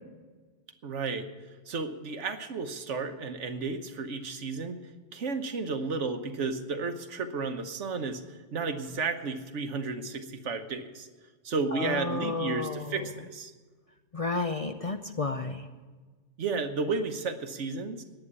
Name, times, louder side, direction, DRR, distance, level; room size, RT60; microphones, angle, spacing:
voice 1, 0.8-1.3 1.7-4.8 5.1-11.1 11.4-13.5 16.4-18.0, right 4 dB, 80° right, 7 dB, 1.4 m, -33 dB
voice 2, 11.7-12.9 14.1-15.6, left 3 dB, 40° left, 6 dB, 0.5 m, -31 dB
10.5 x 8.9 x 9.6 m, 1.4 s
omnidirectional pair, 1.2 m